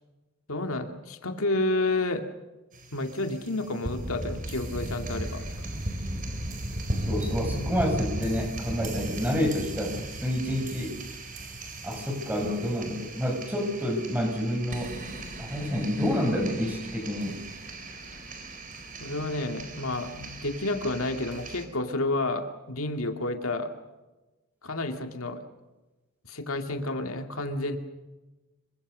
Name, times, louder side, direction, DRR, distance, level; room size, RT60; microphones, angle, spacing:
voice 1, 0.5-2.2 2.9-5.7 19.0-23.7 24.6-25.4 26.2-27.8, left 2 dB, 75° left, 6 dB, 2.3 m, -30 dB
sound 1, 2.7-21.6, right 1 dB, 40° right, 4.6 m, -36 dB
voice 2, 7.1-11.0 11.8-15.0 15.4-17.4, equal, 10° right, 4 dB, 6.3 m, -28 dB
27.0 x 24.5 x 6.4 m, 1.1 s
head